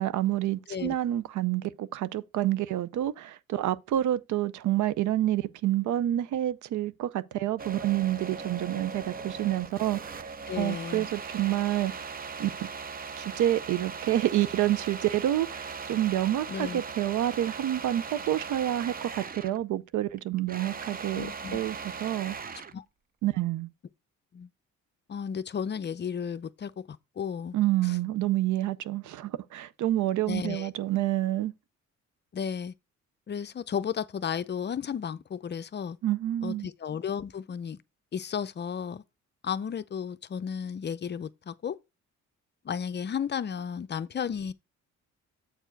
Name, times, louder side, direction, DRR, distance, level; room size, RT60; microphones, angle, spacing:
voice 1, 0.0-10.3 10.6-12.1 12.4-12.5 13.2-21.3 21.5-22.4 23.2-23.7 27.5-31.5 36.0-36.7, right 13 dB, 75° right, 0.6 m, -28 dB
sound 1, 7.6-19.6 19.9-22.8, right 5 dB, 30° right, 0.6 m, -39 dB
voice 2, 10.5-11.1 16.5-16.8 21.1-21.6 22.7-22.8 24.3-24.5 25.1-27.6 27.8-28.0 30.3-30.7 32.3-32.7 33.3-36.0 36.4-37.8 38.1-39.0 39.4-41.8 42.6-44.5, left 7 dB, 35° left, 0.5 m, -33 dB
8.0 x 4.5 x 4.5 m
cardioid pair, 90°, 30 cm